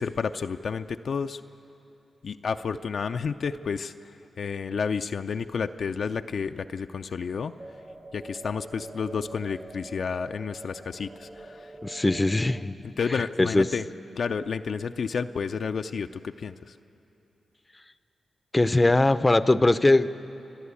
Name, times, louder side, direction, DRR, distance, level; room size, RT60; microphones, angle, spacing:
voice 1, 0.0-1.4 2.2-4.1 4.4-7.5 8.1-11.7 12.8-13.8 14.2-16.7, left 5 dB, 70° left, 7 dB, 0.5 m, -31 dB
sound 1, 7.6-12.6, right 2 dB, 30° right, 1.1 m, -45 dB
voice 2, 11.8-12.8 13.1-13.7 18.5-20.1, left 2 dB, 25° left, 13 dB, 0.6 m, -21 dB
28.5 x 11.0 x 8.4 m, 3.0 s
cardioid pair, 60°, 0 cm